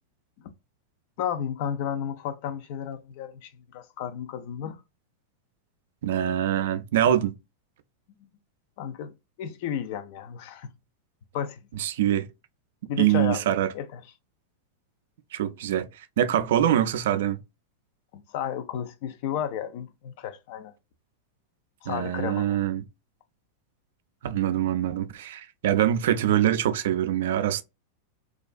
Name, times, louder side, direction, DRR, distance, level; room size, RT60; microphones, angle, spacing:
voice 1, 1.2-4.8 6.3-6.4 8.2-8.3 8.8-9.1 9.4-10.7 11.3-11.7 12.9-14.0 18.1-20.7 21.8-22.6, left 9 dB, 55° left, 0.4 m, -33 dB
voice 2, 6.0-7.3 11.8-12.3 13.0-13.7 15.3-17.4 21.9-22.8 24.2-27.6, right 11 dB, 65° right, 0.3 m, -24 dB
2.4 x 2.3 x 2.3 m
figure-of-eight pair, 95°, 0 cm